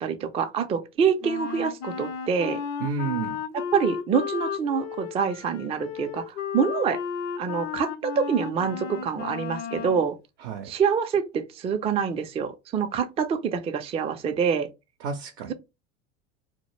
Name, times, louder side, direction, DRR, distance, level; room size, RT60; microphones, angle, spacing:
voice 1, 0.0-2.6 3.5-7.0 7.4-10.2 10.6-14.7, right 6 dB, 20° right, 0.3 m, -26 dB
Wind instrument woodwind instrument, 1.2-10.1, left 7 dB, 45° left, 0.5 m, -33 dB
voice 2, 2.8-3.4 10.4-10.7 15.0-15.5, right 5 dB, 75° right, 0.6 m, -30 dB
2.2 x 2.1 x 3.0 m
hypercardioid pair, 70°, 36 cm